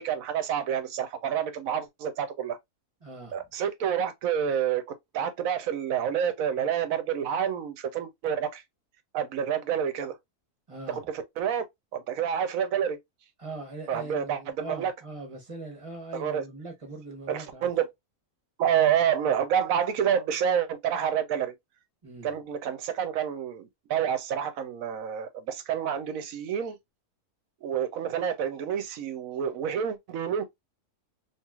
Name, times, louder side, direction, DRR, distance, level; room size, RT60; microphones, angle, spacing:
voice 1, 0.0-2.6 3.3-4.8 5.1-8.6 9.1-10.2 10.9-11.6 11.9-13.0 13.9-14.9 16.1-16.4 17.3-17.9 18.6-21.5 22.2-26.8 27.6-30.4, right 8 dB, 70° right, 0.9 m, -28 dB
voice 2, 3.0-3.4 10.7-11.0 13.4-17.7 22.0-22.3, right 2 dB, 25° right, 0.8 m, -41 dB
3.0 x 3.0 x 2.3 m
omnidirectional pair, 1.6 m